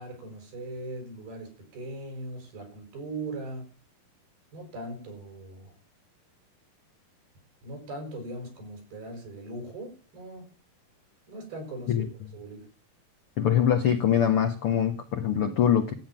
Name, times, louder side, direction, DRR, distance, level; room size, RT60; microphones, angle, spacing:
voice 1, 0.0-3.7 4.5-5.7 7.6-10.5 11.3-12.1 12.3-12.7, right 2 dB, 90° right, 4 dB, 7.3 m, -39 dB
voice 2, 13.4-15.9, left 9 dB, 80° left, 5 dB, 1.2 m, -23 dB
13.0 x 9.1 x 7.3 m, 0.41 s
omnidirectional pair, 4.3 m